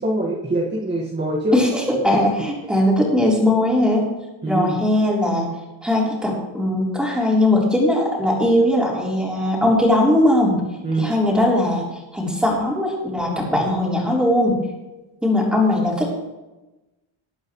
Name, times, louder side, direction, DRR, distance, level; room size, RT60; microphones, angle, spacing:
voice 1, 0.0-1.6 4.4-4.8 10.8-11.1, right 1 dB, 20° right, -4 dB, 1.7 m, -23 dB
voice 2, 1.5-4.1 4.5-5.5 5.8-10.6 11.0-11.9 12.1-14.6 15.2-16.1, left 1 dB, ahead, -4 dB, 3.7 m, -19 dB
20.0 x 8.9 x 3.2 m, 1.0 s
cardioid pair, 155°, 50 cm